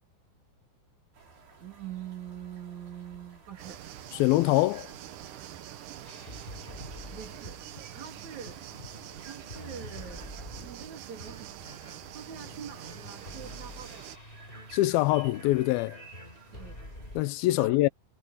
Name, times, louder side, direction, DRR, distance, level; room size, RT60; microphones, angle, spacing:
sound 1, 1.1-17.2, right 4 dB, 85° right, 8.3 m, -54 dB
voice 1, 1.6-3.9 6.7-7.6 7.9-8.6 9.1-11.6 12.1-14.2 16.5-16.8 17.6-17.8, right 8 dB, 50° right, 4.2 m, -44 dB
sound 2, 3.6-14.2, right 13 dB, 70° right, 2.2 m, -45 dB
voice 2, 4.2-4.9 14.7-16.0 17.2-17.9, left 18 dB, 80° left, 2.4 m, -24 dB
sound 3, 6.0-17.2, left 1 dB, 15° left, 5.5 m, -47 dB
omnidirectional pair, 4.5 m